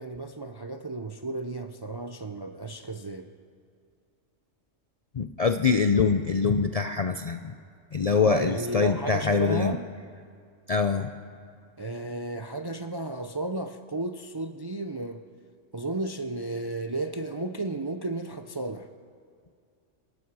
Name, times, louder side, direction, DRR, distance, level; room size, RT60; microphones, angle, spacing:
voice 1, 0.0-3.3 8.2-9.9 11.8-15.2 15.7-18.9, right 2 dB, 35° right, 7 dB, 0.4 m, -33 dB
voice 2, 5.1-7.5 7.9-9.8 10.7-11.1, left 5 dB, 50° left, 7 dB, 0.4 m, -24 dB
26.5 x 11.5 x 4.8 m, 2.3 s
omnidirectional pair, 1.3 m